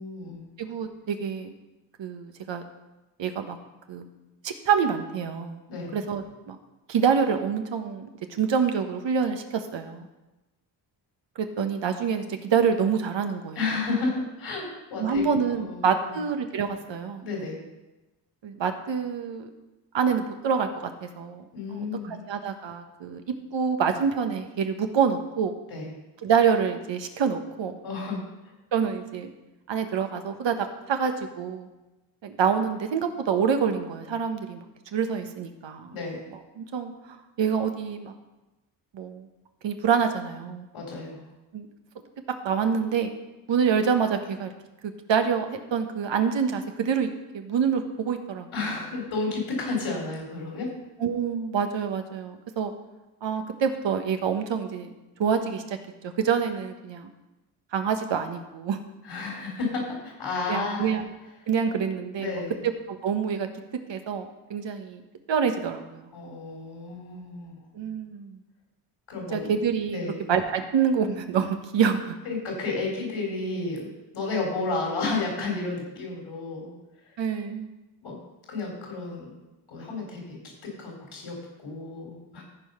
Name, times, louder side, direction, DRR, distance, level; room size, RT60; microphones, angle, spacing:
voice 1, 0.0-0.5 5.7-6.0 13.5-16.1 17.2-17.6 21.5-22.2 25.7-25.9 27.8-28.5 35.9-36.3 40.7-41.2 48.5-50.8 59.0-61.0 62.1-62.6 66.1-67.6 69.1-69.5 69.9-70.2 72.2-73.9 74.1-76.7 77.0-77.2 78.0-78.2 78.5-79.3 79.7-82.4, left 3 dB, 70° left, -1 dB, 4.1 m, -32 dB
voice 2, 0.6-1.5 2.0-2.6 3.2-3.6 3.9-4.1 4.4-5.6 5.9-6.6 6.9-10.1 11.6-13.6 15.0-17.3 18.4-19.5 19.9-21.4 21.7-21.8 22.3-23.2 23.5-25.5 26.2-27.8 28.7-29.3 29.7-31.7 32.2-34.7 34.9-35.9 36.6-38.1 38.9-39.3 39.6-40.7 41.5-41.7 42.4-43.1 43.5-44.5 45.1-48.5 51.0-52.7 53.2-54.9 55.2-55.8 56.0-57.1 57.7-58.8 60.5-61.0 61.5-62.3 62.9-63.5 63.9-65.0 65.3-66.1 67.7-68.4 69.3-70.0 70.3-72.2 77.2-77.7, right 6 dB, 60° right, 6 dB, 1.3 m, -26 dB
14.0 x 4.9 x 5.6 m, 1.1 s
supercardioid pair, 50°, 49 cm